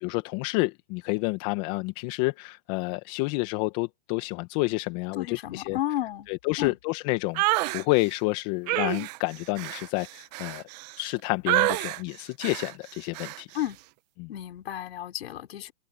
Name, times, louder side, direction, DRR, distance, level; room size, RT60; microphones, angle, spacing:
voice 1, 0.0-5.8 6.3-7.4 7.7-10.6 11.0-13.5 14.2-14.3, left 24 dB, 35° left, 1.5 m, -29 dB
voice 2, 5.1-6.3 6.6-6.8 13.5-13.8 14.3-15.7, left 13 dB, 60° left, 5.2 m, -32 dB
sound 1, 7.4-7.8 8.7-11.1 11.5-12.0 12.4-12.7 13.1-13.4, right 21 dB, 40° right, 0.9 m, -28 dB
hypercardioid pair, 140°, 34 cm